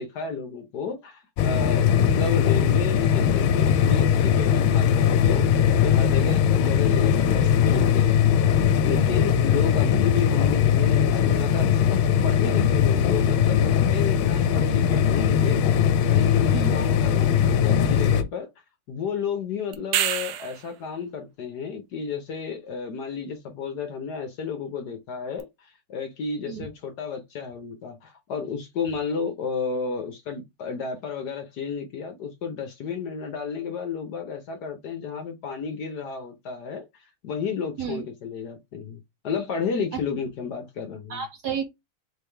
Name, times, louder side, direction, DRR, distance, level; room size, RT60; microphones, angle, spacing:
voice 1, 0.0-18.5 18.9-36.8 37.2-39.0 39.2-41.2, left 6 dB, 60° left, 1.2 m, -32 dB
sound 1, 1.4-18.2, left 8 dB, 80° left, 1.4 m, -20 dB
sound 2, 19.7-20.7 25.4-25.5, right 12 dB, 85° right, 1.5 m, -26 dB
voice 2, 41.1-41.6, right 8 dB, 65° right, 1.1 m, -31 dB
4.4 x 3.4 x 3.3 m
omnidirectional pair, 2.3 m